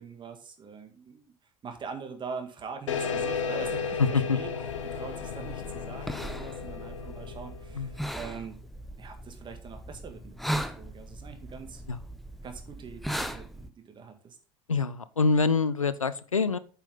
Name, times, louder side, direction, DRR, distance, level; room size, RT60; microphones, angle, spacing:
voice 1, 0.0-1.3 1.6-4.5 4.8-8.6 9.0-11.8 12.4-14.4, right 5 dB, 30° right, 5 dB, 1.8 m, -43 dB
sound 1, 2.9-8.0, left 5 dB, 70° left, 0.9 m, -34 dB
voice 2, 4.0-4.4 7.7-7.9 11.9-12.0 14.7-16.6, left 4 dB, 85° left, 16 dB, 0.4 m, -25 dB
sound 2, 4.7-13.7, equal, ahead, 0.7 m, -38 dB
8.8 x 5.8 x 3.6 m, 0.40 s
figure-of-eight pair, 65°, 17 cm